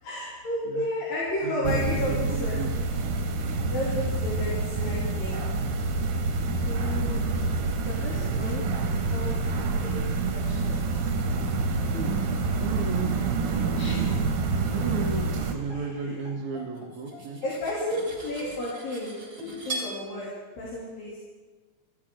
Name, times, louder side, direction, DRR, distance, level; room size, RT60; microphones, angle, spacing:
voice 1, 0.0-2.6 3.7-5.4 6.6-7.2 7.9-8.6 9.1-9.4 9.8-10.0 10.3-11.1 13.7-14.3 15.7-16.1 17.4-20.3 20.6-21.3, left 1 dB, 75° left, -7 dB, 4.7 m, -33 dB
voice 2, 1.4-1.7 2.3-2.7 11.9-12.2 12.6-13.1 14.7-17.4, right 5 dB, 60° right, -3 dB, 2.6 m, -33 dB
sound 1, 1.6-15.5, right 3 dB, 80° right, 3.3 m, -27 dB
Bowed string instrument, 11.4-14.4 14.7-14.9 15.4-15.5 15.7-17.6 17.9-18.7 19.4-20.0, right 3 dB, 40° right, 6.6 m, -41 dB
Cutlery silverware, 16.7-19.9, right 2 dB, 25° right, 7.0 m, -39 dB
23.0 x 15.0 x 3.8 m, 1.3 s
omnidirectional pair, 4.0 m